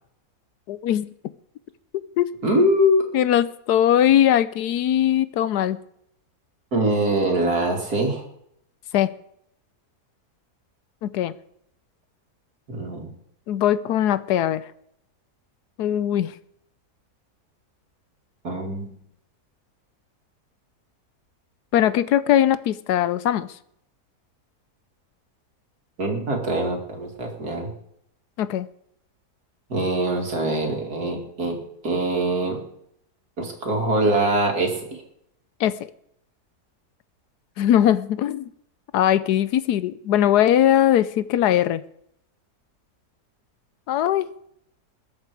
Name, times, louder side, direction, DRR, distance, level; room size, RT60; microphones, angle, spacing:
voice 1, 0.7-1.1 2.2-2.3 3.1-5.8 8.9-9.1 11.0-11.3 13.5-14.6 15.8-16.3 21.7-23.5 28.4-28.7 35.6-35.9 37.6-38.5 38.9-41.8 43.9-44.3, left 11 dB, 85° left, 16 dB, 1.3 m, -20 dB
voice 2, 2.4-3.0 6.7-8.2 12.7-13.1 18.4-18.9 26.0-27.7 29.7-31.6 31.8-32.6 33.4-35.0, right 1 dB, 70° right, 1 dB, 3.2 m, -23 dB
21.0 x 8.1 x 4.9 m, 0.73 s
omnidirectional pair, 1.7 m